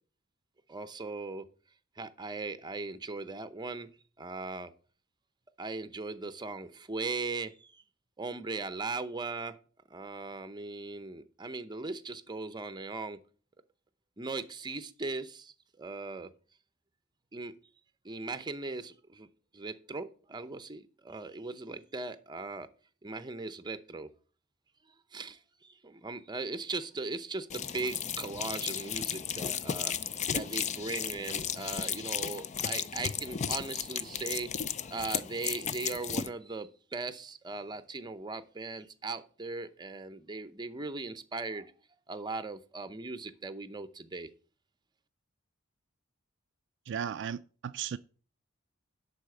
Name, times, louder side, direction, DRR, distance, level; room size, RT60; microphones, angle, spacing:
voice 1, 0.7-1.4 2.0-3.9 4.2-4.7 5.6-7.8 8.2-9.5 9.9-13.2 14.2-16.3 17.3-17.5 18.0-19.3 19.5-22.7 23.0-24.1 25.1-29.9 30.3-34.5 34.9-41.7 42.1-44.3, right 3 dB, 20° right, 0.7 m, -39 dB
sound 1, 27.5-36.3, left 8 dB, 35° left, 0.4 m, -35 dB
voice 2, 46.9-48.0, right 8 dB, 60° right, 0.3 m, -36 dB
11.5 x 4.2 x 7.0 m
head